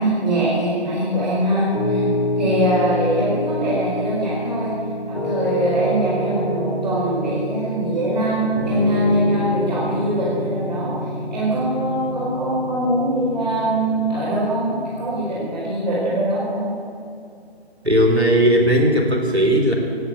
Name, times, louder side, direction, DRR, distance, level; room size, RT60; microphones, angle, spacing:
voice 1, 0.0-2.1 2.4-4.7 5.1-10.9 11.3-16.7, right 1 dB, 40° right, -6 dB, 4.9 m, -22 dB
Piano, 1.7-15.1, left 1 dB, 35° left, 3.5 m, -27 dB
voice 2, 17.8-19.7, equal, 80° right, 2 dB, 3.6 m, -17 dB
17.0 x 8.7 x 8.6 m, 2.5 s
figure-of-eight pair, 150°, 32 cm